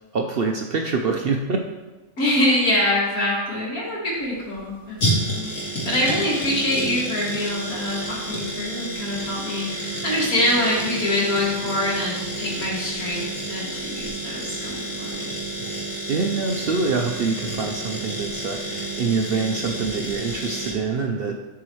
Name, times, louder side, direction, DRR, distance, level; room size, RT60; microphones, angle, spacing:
voice 1, 0.1-1.6 16.1-21.4, right 4 dB, 60° right, 3 dB, 0.6 m, -25 dB
voice 2, 2.2-15.2, left 1 dB, 80° left, -5 dB, 2.7 m, -25 dB
sound 1, 4.1-20.7, right 1 dB, 65° left, 2.7 m, -30 dB
12.5 x 4.7 x 3.1 m, 1.2 s
omnidirectional pair, 1.5 m